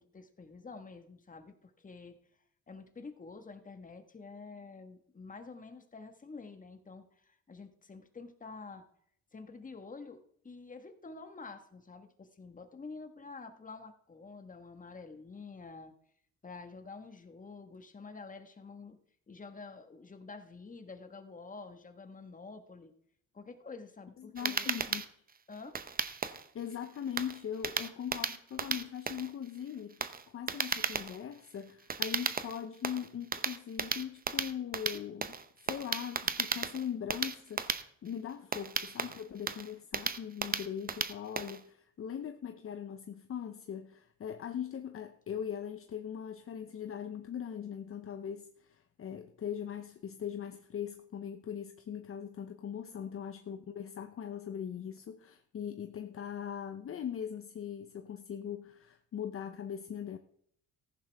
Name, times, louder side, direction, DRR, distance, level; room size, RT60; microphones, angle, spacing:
voice 1, 0.0-2.2 2.7-8.8 9.3-15.9 16.4-19.0 19.3-22.9 23.3-24.7 25.5-25.8 53.0-53.3, left 4 dB, 25° left, 1.5 m, -48 dB
voice 2, 24.2-25.0 26.5-35.3 35.6-60.2, left 8 dB, 45° left, 0.8 m, -40 dB
sound 1, 24.4-41.6, right 5 dB, 30° right, 0.8 m, -35 dB
14.5 x 10.5 x 3.5 m
cardioid pair, 90°, 30 cm